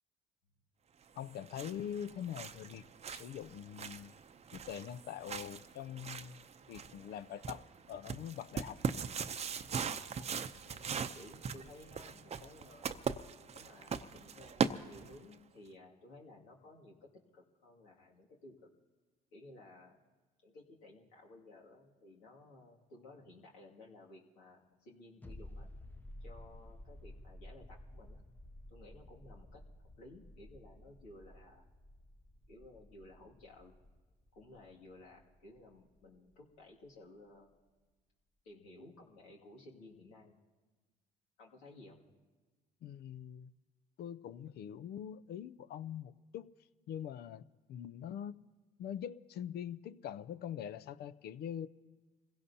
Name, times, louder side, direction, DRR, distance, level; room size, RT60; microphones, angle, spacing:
voice 1, 1.2-2.8 3.1-4.1 4.5-6.4 6.7-8.8 42.8-43.5 44.0-46.5 46.9-48.4 48.8-51.7, left 9 dB, 60° left, 0.5 m, -43 dB
sound 1, 1.2-15.3, right 6 dB, 35° right, 0.7 m, -41 dB
voice 2, 10.6-13.0 13.5-18.7 19.3-20.0 20.4-25.7 26.2-28.2 28.7-29.7 30.0-31.6 32.5-33.7 34.4-37.6 38.4-40.4 41.4-42.0, left 2 dB, 90° left, 2.4 m, -56 dB
sound 2, 25.2-36.6 36.8-36.9, left 1 dB, 10° left, 0.7 m, -54 dB
26.5 x 16.5 x 2.8 m
supercardioid pair, 75°, 18 cm